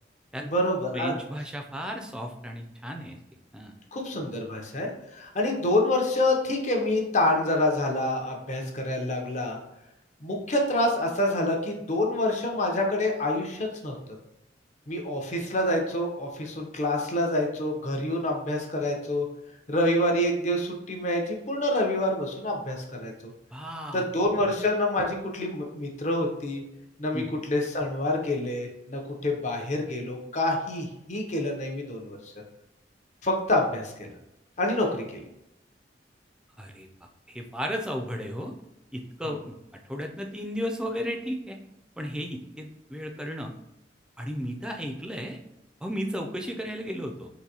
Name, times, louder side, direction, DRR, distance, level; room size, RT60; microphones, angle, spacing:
voice 1, 0.4-1.1 3.9-9.6 10.2-14.0 14.9-19.3 19.7-23.3 23.9-26.6 27.0-32.3 33.2-34.1 34.6-35.2 39.2-39.4, left 1 dB, 40° left, 1 dB, 0.6 m, -27 dB
voice 2, 0.9-3.2 3.5-3.7 23.5-24.1 24.4-24.6 27.1-27.3 36.6-36.9 37.3-38.5 38.9-39.6 39.9-41.6 42.0-43.5 44.2-45.4 45.8-47.3, equal, 5° right, 3 dB, 0.3 m, -34 dB
3.8 x 2.6 x 2.8 m, 0.89 s
head